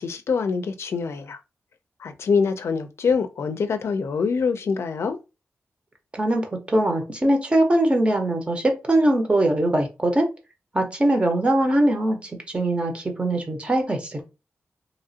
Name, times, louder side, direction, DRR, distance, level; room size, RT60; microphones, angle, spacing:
voice 1, 0.0-1.4 2.0-5.2, left 5 dB, 75° left, 0.4 m, -25 dB
voice 2, 6.1-10.3 10.7-14.2, right 1 dB, 25° right, 0.7 m, -21 dB
2.9 x 2.4 x 2.7 m
wide cardioid pair, 110°, 5 cm